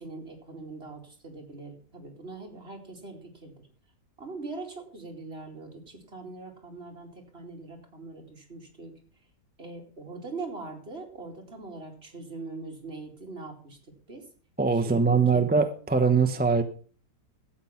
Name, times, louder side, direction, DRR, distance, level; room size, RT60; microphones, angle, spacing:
voice 1, 0.0-3.5 4.2-8.9 9.6-13.8 14.1-14.2 14.8-15.5, right 3 dB, 35° right, 1 dB, 3.0 m, -42 dB
voice 2, 14.6-16.6, right 5 dB, 10° right, 6 dB, 0.5 m, -22 dB
13.0 x 8.6 x 5.8 m, 0.41 s
omnidirectional pair, 1.8 m